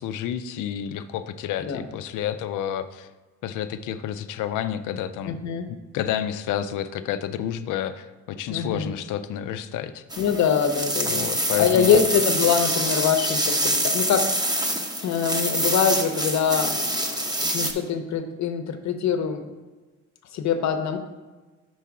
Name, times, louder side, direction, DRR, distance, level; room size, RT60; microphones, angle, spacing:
voice 1, 0.0-3.1 3.4-5.4 5.7-10.0 11.0-12.0, left 10 dB, 90° left, 11 dB, 0.5 m, -30 dB
voice 2, 5.3-5.7 8.5-8.9 10.2-11.3 11.6-14.3 15.0-19.5 20.3-21.0, left 7 dB, 65° left, 7 dB, 0.8 m, -24 dB
sound 1, 10.1-17.7, right 1 dB, 15° right, 0.7 m, -26 dB
5.7 x 4.6 x 4.7 m, 1.2 s
cardioid pair, 90°, 30 cm